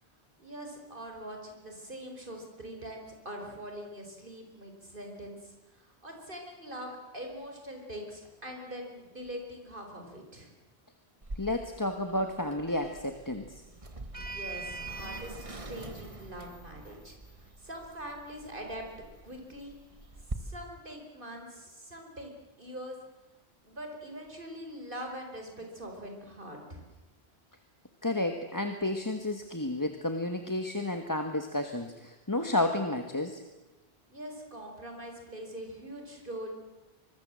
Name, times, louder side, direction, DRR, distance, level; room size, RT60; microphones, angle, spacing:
voice 1, 0.4-10.5 14.1-18.8 19.2-19.8 20.3-23.0 23.6-26.8 34.1-36.6, equal, 55° right, 3 dB, 4.9 m, -43 dB
Sliding door, 11.2-20.3, right 2 dB, 30° right, 1.7 m, -43 dB
voice 2, 11.4-13.6 28.0-33.4, left 1 dB, 20° left, 6 dB, 1.4 m, -31 dB
25.5 x 21.5 x 7.6 m, 1.1 s
omnidirectional pair, 1.1 m